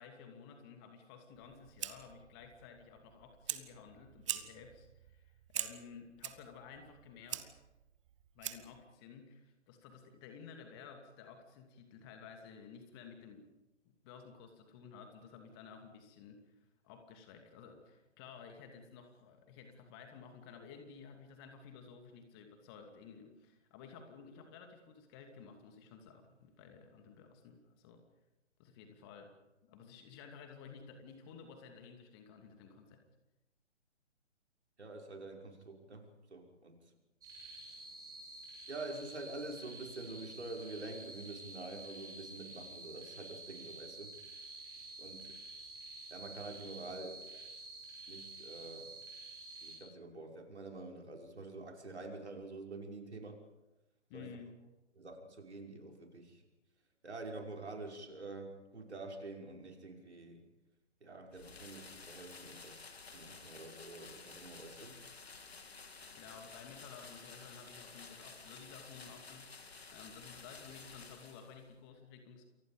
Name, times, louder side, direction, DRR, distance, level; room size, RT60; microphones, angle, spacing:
voice 1, 0.0-7.5 8.3-13.5 13.8-16.6 16.8-28.0 28.6-29.4 29.6-33.0 54.1-54.6 65.8-69.5 69.9-72.4, left 6 dB, 20° left, 5 dB, 2.6 m, -54 dB
Fire, 1.3-8.8, right 11 dB, 25° right, 1.2 m, -45 dB
voice 2, 34.8-36.9 38.7-44.2 45.0-45.4 46.1-47.2 48.1-48.9 49.6-53.4 54.1-54.3 55.0-56.4 57.0-60.5 61.0-65.0, right 2 dB, 65° right, 2 dB, 6.0 m, -47 dB
sound 1, 37.2-49.8, right 2 dB, 10° right, 6.7 m, -50 dB
sound 2, 61.3-71.7, left 4 dB, 60° left, 3.5 m, -53 dB
29.0 x 24.5 x 5.2 m, 1.0 s
figure-of-eight pair, 135°, 36 cm